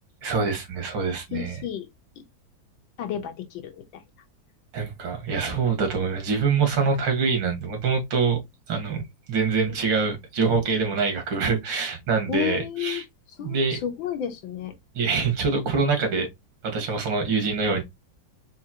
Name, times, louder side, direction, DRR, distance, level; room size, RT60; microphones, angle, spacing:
voice 1, 0.2-1.6 4.7-8.4 8.7-9.0 9.3-13.0 13.4-13.8 14.9-16.3 16.6-17.8, right 5 dB, 85° right, 2.2 m, -25 dB
voice 2, 1.3-1.9 3.0-3.8 12.3-13.0 13.4-14.7 17.3-17.4, left 9 dB, 90° left, 1.6 m, -31 dB
5.1 x 2.5 x 2.8 m
omnidirectional pair, 2.0 m